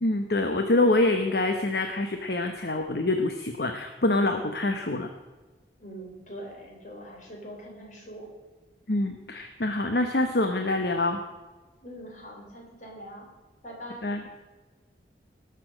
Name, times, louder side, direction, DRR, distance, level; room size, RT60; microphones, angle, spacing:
voice 1, 0.0-5.1 8.9-11.2 14.0-14.2, left 2 dB, 60° left, 5 dB, 0.9 m, -25 dB
voice 2, 5.8-8.3 11.8-13.3 13.6-14.1, equal, 45° left, 0 dB, 3.7 m, -43 dB
18.5 x 7.0 x 6.3 m, 1.3 s
head